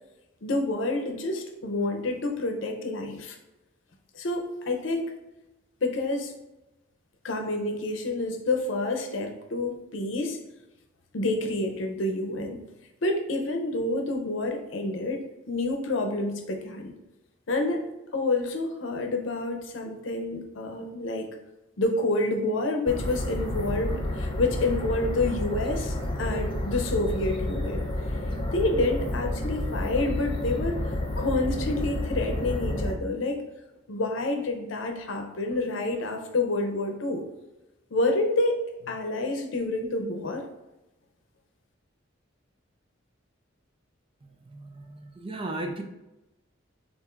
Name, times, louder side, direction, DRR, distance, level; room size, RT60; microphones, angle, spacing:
voice 1, 0.4-3.4 4.1-5.0 5.8-6.3 7.2-10.4 11.1-12.6 13.0-16.9 17.5-17.8 18.1-21.4 21.8-27.8 28.5-30.8 31.2-33.4 33.9-37.2 37.9-40.4, left 2 dB, 75° left, 4 dB, 0.7 m, -28 dB
sound 1, 22.9-32.9, left 1 dB, 25° left, 0.5 m, -30 dB
voice 2, 44.5-45.8, right 2 dB, 25° right, 4 dB, 0.5 m, -35 dB
6.8 x 2.6 x 2.5 m, 0.98 s
head